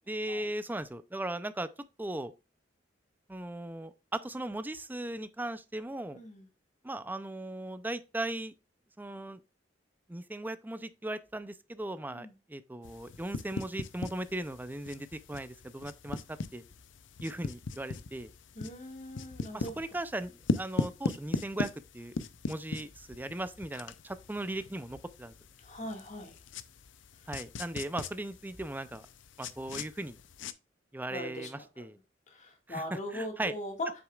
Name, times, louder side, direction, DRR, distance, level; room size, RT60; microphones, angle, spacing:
voice 1, 0.0-1.7 2.0-2.3 3.3-6.2 6.8-8.5 9.0-9.4 10.1-16.6 17.2-18.3 19.5-22.1 22.5-25.3 27.3-29.1 29.4-30.2 30.9-32.0 32.7-33.5, right 1 dB, 10° right, 0.5 m, -38 dB
voice 2, 6.1-6.4 12.1-12.3 18.6-19.8 25.6-26.4 31.1-31.8 32.3-34.0, left 1 dB, 40° left, 1.9 m, -40 dB
sound 1, 12.8-30.5, left 3 dB, 80° left, 0.6 m, -39 dB
8.0 x 6.3 x 2.4 m
head